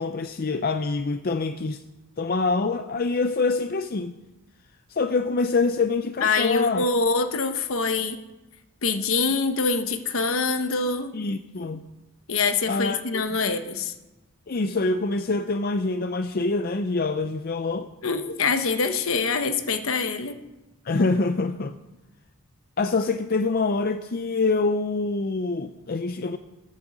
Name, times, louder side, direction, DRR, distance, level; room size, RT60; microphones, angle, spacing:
voice 1, 0.0-1.8 2.2-4.1 4.9-6.8 11.1-11.9 12.7-13.2 14.5-17.9 20.8-21.8 22.8-26.4, left 3 dB, 40° left, 9 dB, 0.5 m, -25 dB
voice 2, 6.2-8.2 8.8-11.1 12.3-13.9 18.0-20.4, left 4 dB, 65° left, 9 dB, 1.0 m, -25 dB
13.0 x 8.9 x 7.3 m, 1.0 s
head